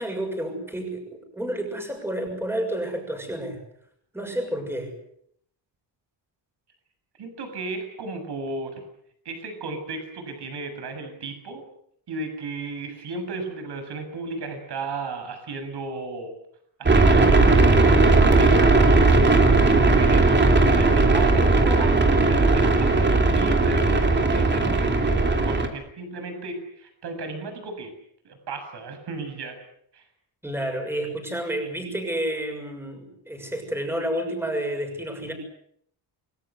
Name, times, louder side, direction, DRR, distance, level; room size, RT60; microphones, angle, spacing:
voice 1, 0.0-3.6 4.1-4.9 30.4-35.3, right 1 dB, 5° right, 3 dB, 6.7 m, -30 dB
voice 2, 7.2-8.8 9.3-11.6 12.1-16.3 16.8-17.7 18.0-27.9 28.2-29.6 29.9-30.0, right 3 dB, 60° right, 7 dB, 7.1 m, -34 dB
sound 1, 16.9-25.7, right 3 dB, 25° right, 3.3 m, -18 dB
29.5 x 20.5 x 8.2 m, 0.70 s
wide cardioid pair, 170°, 45 cm